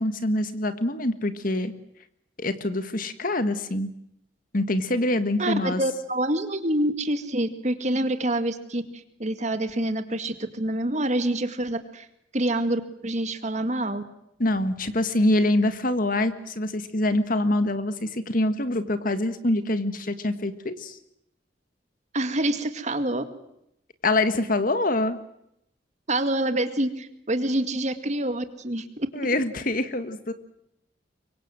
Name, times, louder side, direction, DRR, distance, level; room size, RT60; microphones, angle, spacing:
voice 1, 0.0-1.7 2.4-3.9 4.5-5.8 14.4-21.0 24.0-25.2 29.1-30.3, left 1 dB, 50° left, 10 dB, 1.8 m, -25 dB
voice 2, 5.4-12.1 12.3-14.0 22.1-23.2 26.1-29.1, right 1 dB, 40° right, 9 dB, 2.1 m, -27 dB
24.5 x 24.0 x 7.8 m, 0.79 s
head